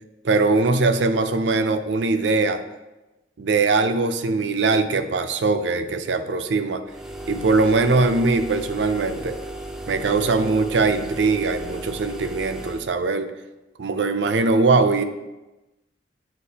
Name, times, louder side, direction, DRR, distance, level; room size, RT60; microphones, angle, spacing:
voice 1, 0.2-2.6 3.4-6.8 7.3-9.4 9.9-13.3 13.8-15.0, right 3 dB, 70° right, 9 dB, 0.5 m, -21 dB
sound 1, 6.9-12.9, right 1 dB, ahead, 0.4 m, -35 dB
8.2 x 4.6 x 2.8 m, 1.1 s
head